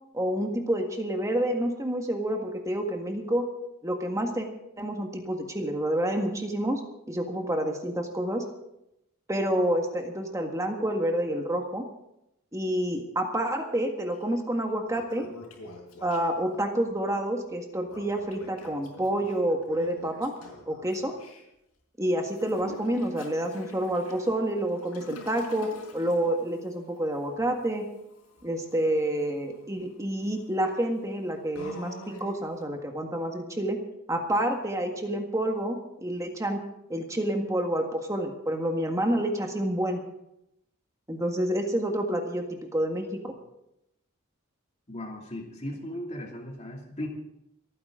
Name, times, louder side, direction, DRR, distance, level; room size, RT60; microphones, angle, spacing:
voice 1, 0.1-3.5 3.8-4.5 4.8-6.8 7.1-8.4 9.3-11.8 12.5-15.3 16.0-20.3 20.7-21.1 22.0-27.9 28.4-33.8 34.1-36.6 36.9-40.0 41.1-43.3, right 1 dB, 15° right, 3 dB, 1.6 m, -28 dB
Toilet flush, 14.1-14.2 14.7-16.6 17.8-21.4 22.3-32.6, left 1 dB, 85° left, 4.8 m, -47 dB
voice 2, 44.9-47.1, left 1 dB, 30° left, 1 dB, 2.7 m, -37 dB
27.5 x 9.8 x 3.8 m, 0.84 s
head